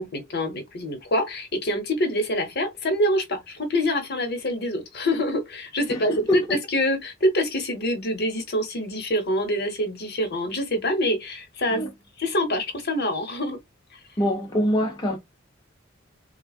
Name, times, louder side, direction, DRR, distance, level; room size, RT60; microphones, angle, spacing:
voice 1, 0.0-11.8 12.2-13.6, equal, 55° left, 1.0 m, -25 dB
voice 2, 5.9-6.4 11.7-11.9 14.2-15.2, equal, 20° left, 0.5 m, -24 dB
3.4 x 2.3 x 2.3 m
head